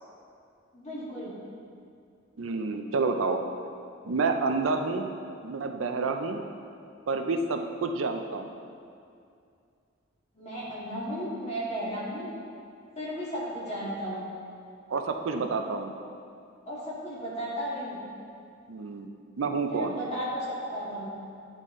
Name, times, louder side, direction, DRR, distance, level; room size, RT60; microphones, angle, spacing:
voice 1, 0.7-1.3 10.3-12.3 12.9-14.2 16.7-18.0 19.7-20.4 20.7-21.1, equal, 30° left, -7 dB, 1.6 m, -34 dB
voice 2, 2.4-3.4 4.0-5.1 5.4-6.4 7.1-8.5 14.9-15.9 18.7-19.1 19.4-20.0, right 4 dB, 75° right, 5 dB, 0.5 m, -29 dB
9.7 x 4.1 x 3.6 m, 2.4 s
head